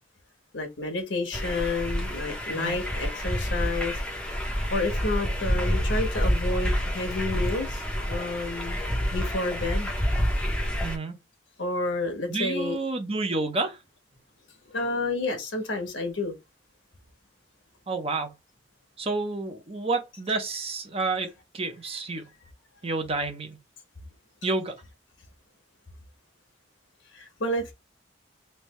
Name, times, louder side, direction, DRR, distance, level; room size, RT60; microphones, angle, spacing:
voice 1, 0.5-3.9 4.7-8.8 9.1-9.9 11.6-12.8 14.7-16.3 27.1-27.7, left 2 dB, 70° left, 1.2 m, -30 dB
sound 1, 1.3-11.0, equal, 5° left, 0.7 m, -28 dB
voice 2, 10.8-11.2 12.3-13.8 17.9-18.3 19.0-22.2 22.8-23.6 24.4-24.7, right 3 dB, 30° right, 0.7 m, -29 dB
3.3 x 2.6 x 3.1 m
head